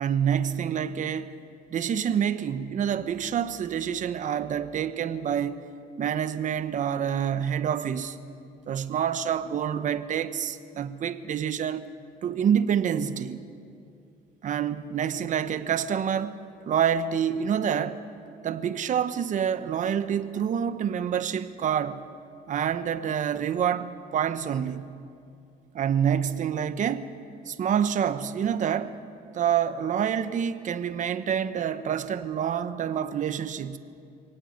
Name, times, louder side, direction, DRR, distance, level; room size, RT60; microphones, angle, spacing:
voice 1, 0.0-1.3 1.7-5.6 6.0-8.2 8.7-11.8 12.2-13.4 14.4-16.4 16.7-18.0 18.4-22.0 22.5-24.8 25.7-27.1 27.5-29.0 29.3-33.8, right 8 dB, 50° right, 1.0 m, -27 dB
23.5 x 17.5 x 6.6 m
cardioid pair, 110°, 17 cm